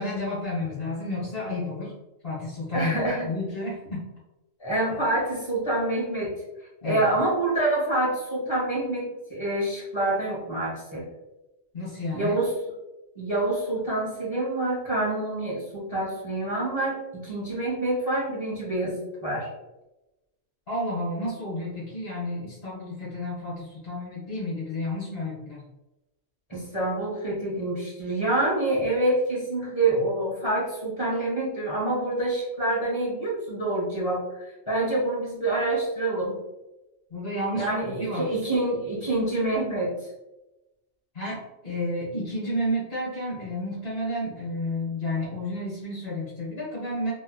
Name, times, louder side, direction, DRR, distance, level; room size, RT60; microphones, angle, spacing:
voice 1, 0.0-1.9 2.2-4.1 6.8-7.1 11.7-12.4 20.7-25.6 37.1-37.7 38.0-38.3 41.1-47.1, left 1 dB, 55° left, -9 dB, 1.6 m, -31 dB
voice 2, 2.7-3.3 4.6-6.3 6.8-11.1 12.1-12.5 13.1-19.5 26.5-36.4 37.5-40.1, right 2 dB, 25° left, -6 dB, 1.4 m, -27 dB
3.4 x 3.0 x 2.3 m, 0.98 s
omnidirectional pair, 1.2 m